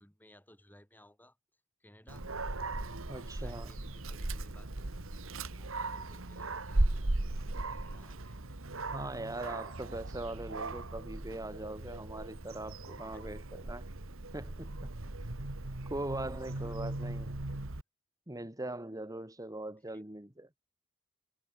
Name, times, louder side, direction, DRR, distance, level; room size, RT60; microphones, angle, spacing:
voice 1, 0.0-1.4 1.8-2.3 3.1-4.7 5.4-6.8 7.6-8.6 12.9-13.2 16.4-16.8 19.9-20.0, left 1 dB, 10° left, 6.7 m, -60 dB
Dog, 2.1-17.8, right 2 dB, 65° right, 1.7 m, -37 dB
voice 2, 3.1-3.7 8.9-13.9 14.3-15.3 15.9-17.4 18.3-20.5, right 1 dB, 15° right, 1.8 m, -41 dB
head